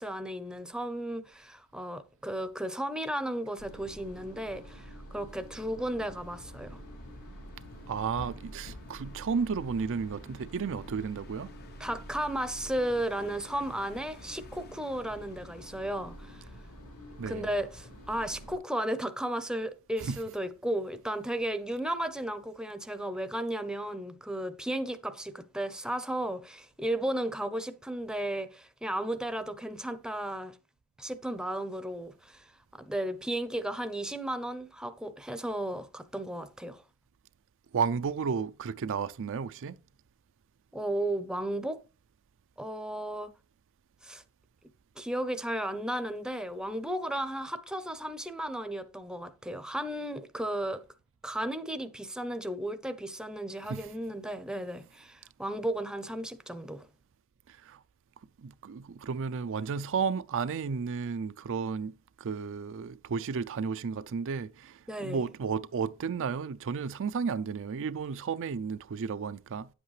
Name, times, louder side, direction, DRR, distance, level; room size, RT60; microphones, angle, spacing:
voice 1, 0.0-6.8 11.8-16.5 17.3-30.6 31.0-36.8 40.7-41.8 42.6-43.3 44.0-44.2 45.0-50.8 51.2-56.9 64.9-65.3, right 1 dB, 5° right, 0.7 m, -34 dB
sound 1, 3.6-18.6, equal, 75° left, 4.8 m, -48 dB
sound 2, 5.9-18.5, left 2 dB, 45° left, 0.8 m, -54 dB
voice 2, 7.9-11.5 17.2-17.6 20.0-20.4 37.7-39.8 53.6-53.9 57.5-57.8 58.4-61.9 62.2-69.7, right 5 dB, 60° right, 0.4 m, -33 dB
9.7 x 7.9 x 3.2 m
head